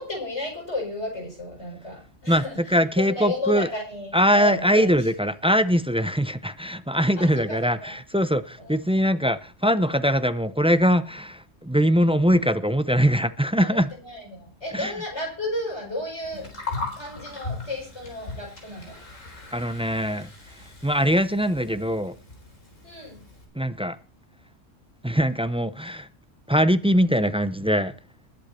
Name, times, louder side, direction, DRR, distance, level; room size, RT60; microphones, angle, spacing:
voice 1, 0.0-5.1 7.2-7.9 8.6-8.8 13.6-16.5 16.9-19.0 22.8-23.2, left 2 dB, 65° left, 6.1 m, -33 dB
voice 2, 2.3-3.7 4.1-13.9 14.7-14.9 19.5-20.3 20.8-22.1 23.6-24.0 25.0-26.1 26.5-27.9, equal, 10° right, 0.3 m, -22 dB
Gurgling, 16.2-23.4, left 3 dB, 90° left, 4.3 m, -38 dB
20.0 x 8.2 x 4.3 m
omnidirectional pair, 1.3 m